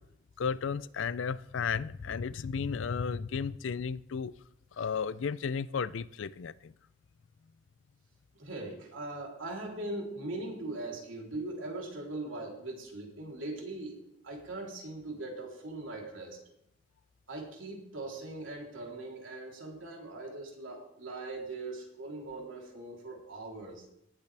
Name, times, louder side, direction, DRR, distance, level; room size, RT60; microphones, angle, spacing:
voice 1, 0.4-4.3 4.8-6.7, left 6 dB, 75° left, 0.4 m, -33 dB
voice 2, 8.3-16.4 17.3-23.8, right 2 dB, 90° right, 3.4 m, -40 dB
18.5 x 8.4 x 3.4 m
head